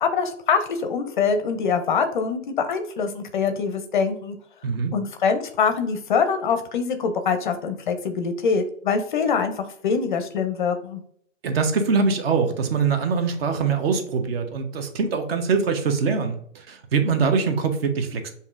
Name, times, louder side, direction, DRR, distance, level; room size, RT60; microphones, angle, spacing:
voice 1, 0.0-4.4 4.9-11.0, left 5 dB, 40° left, 8 dB, 0.5 m, -24 dB
voice 2, 4.6-4.9 11.4-18.3, right 5 dB, 50° right, 7 dB, 0.8 m, -23 dB
6.8 x 2.7 x 2.4 m, 0.66 s
hypercardioid pair, 135°, 39 cm